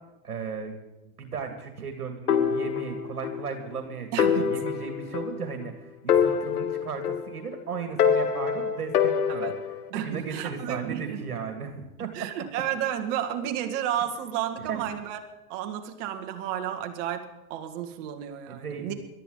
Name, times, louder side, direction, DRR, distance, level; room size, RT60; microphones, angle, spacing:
voice 1, 0.2-0.7 1.2-9.6 9.9-12.3 14.6-14.9 18.5-18.9, right 6 dB, 90° right, 5 dB, 2.2 m, -36 dB
sound 1, 2.3-3.4 3.7-3.8 4.2-5.7 6.1-7.5 8.0-9.8, left 7 dB, 85° left, 1.5 m, -25 dB
voice 2, 4.1-4.5 9.3-9.5 9.9-11.2 12.1-15.2 15.5-18.9, right 10 dB, 55° right, 5 dB, 2.1 m, -32 dB
22.0 x 13.0 x 3.9 m, 1.0 s
hypercardioid pair, 105°, 44 cm